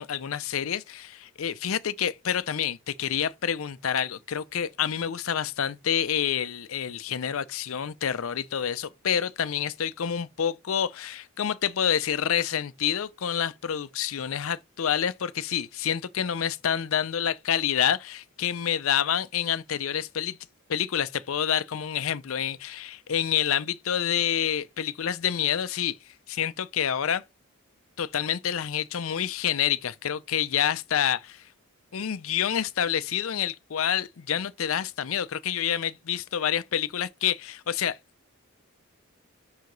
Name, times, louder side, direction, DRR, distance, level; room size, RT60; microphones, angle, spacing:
voice 1, 0.0-20.4 20.7-26.0 26.3-27.2 28.0-31.4 31.9-38.0, left 9 dB, 70° left, 0.5 m, -28 dB
5.6 x 4.8 x 3.9 m
head